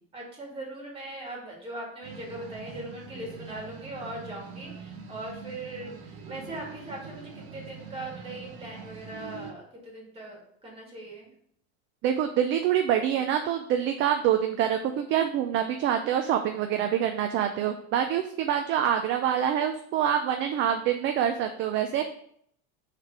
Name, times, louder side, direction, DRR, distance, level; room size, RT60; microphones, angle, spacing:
voice 1, 0.1-11.3, right 1 dB, 15° right, -1 dB, 2.1 m, -40 dB
sound 1, 2.0-9.5, right 5 dB, 70° right, 1.3 m, -44 dB
voice 2, 12.0-22.0, right 9 dB, 40° right, 6 dB, 0.4 m, -26 dB
6.4 x 3.3 x 6.0 m, 0.66 s
cardioid pair, 155°, 32 cm